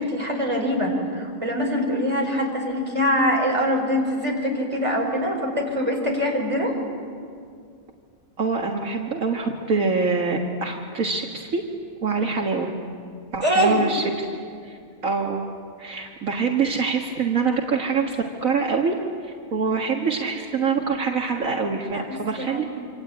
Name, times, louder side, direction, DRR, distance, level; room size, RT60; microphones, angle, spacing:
voice 1, 0.0-6.7 13.4-13.8 21.9-22.7, equal, 20° right, 0 dB, 4.9 m, -23 dB
voice 2, 8.4-11.6 12.0-12.7 13.3-14.3 14.6-15.5 15.8-18.9 19.2-22.6, right 4 dB, 70° right, 1 dB, 2.1 m, -25 dB
26.5 x 26.0 x 8.7 m, 2.2 s
omnidirectional pair, 1.5 m